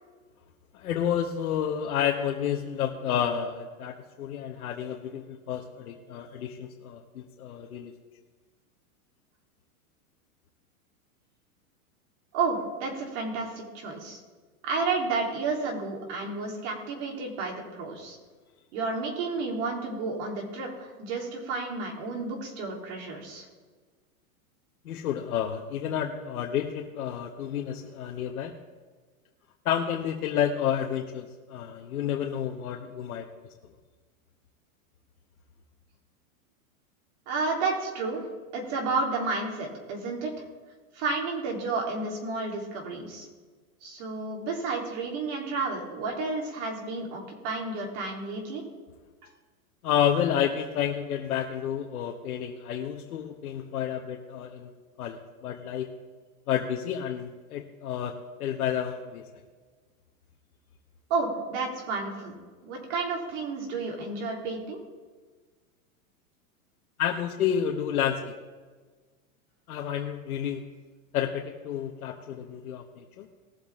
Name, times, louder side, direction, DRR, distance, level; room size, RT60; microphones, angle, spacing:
voice 1, 0.7-7.9 24.8-28.5 29.6-33.3 49.8-54.7 55.0-55.9 56.5-58.1 58.4-59.2 67.0-68.3 69.7-70.6 71.1-73.3, left 9 dB, 85° left, 1 dB, 1.3 m, -30 dB
voice 2, 12.3-14.2 14.6-18.2 18.7-23.5 37.3-38.2 38.5-40.3 40.9-43.3 43.8-48.6 61.1-62.3 62.6-64.8, right 3 dB, 55° right, 0 dB, 3.5 m, -31 dB
19.5 x 7.6 x 3.7 m, 1.4 s
supercardioid pair, 140°, 42 cm